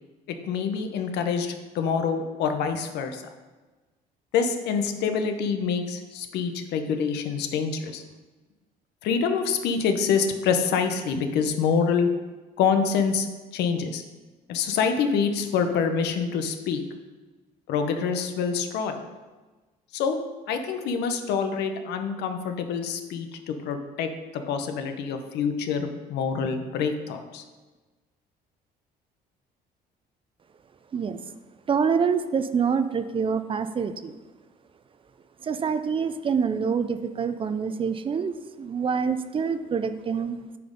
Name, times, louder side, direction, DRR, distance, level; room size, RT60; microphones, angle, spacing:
voice 1, 0.3-3.2 4.3-8.0 9.0-12.1 12.6-13.3 13.5-14.0 14.5-16.8 17.7-19.0 19.9-20.2 20.5-27.4, left 6 dB, 80° left, 7 dB, 0.8 m, -26 dB
voice 2, 31.7-34.2 35.4-40.6, right 6 dB, 30° right, 11 dB, 0.5 m, -26 dB
8.5 x 4.3 x 5.2 m, 1.2 s
cardioid pair, 110°, 17 cm